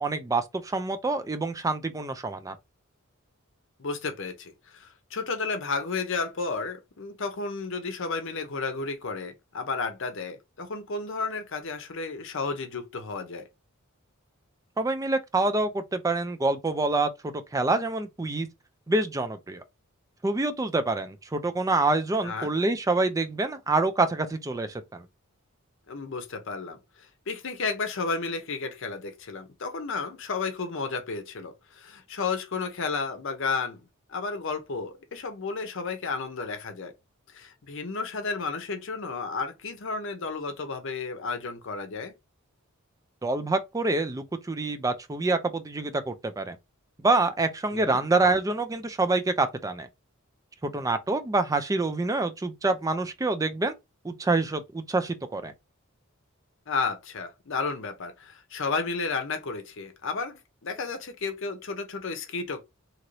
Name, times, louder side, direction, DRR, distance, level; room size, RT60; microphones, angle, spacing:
voice 1, 0.0-2.6 14.8-18.5 18.9-19.6 20.2-25.1 43.2-46.6 47.0-49.9 50.6-53.7 54.0-55.5, right 3 dB, 15° right, 0.4 m, -26 dB
voice 2, 3.8-13.5 22.2-22.5 25.9-33.8 34.1-36.9 37.3-42.1 47.7-48.0 56.7-62.6, left 4 dB, 65° left, 0.7 m, -32 dB
2.9 x 2.6 x 3.1 m
head